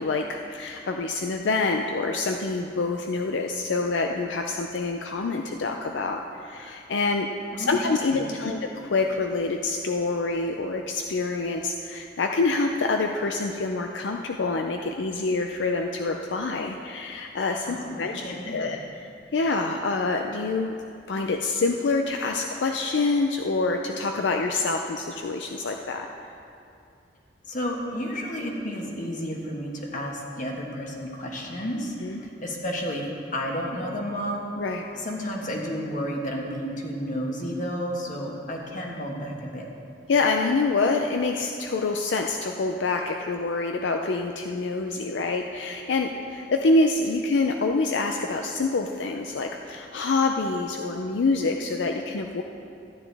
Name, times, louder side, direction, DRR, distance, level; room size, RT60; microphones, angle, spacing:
voice 1, 0.0-20.7 21.1-26.1 32.0-32.2 34.6-34.9 40.1-52.4, left 3 dB, 75° left, 3 dB, 0.5 m, -26 dB
voice 2, 7.5-7.8 8.1-8.6 17.7-18.7 27.5-31.9 32.2-33.0 33.3-34.5 34.9-39.7, equal, 45° left, 0 dB, 1.4 m, -32 dB
14.0 x 9.7 x 3.4 m, 2.6 s
head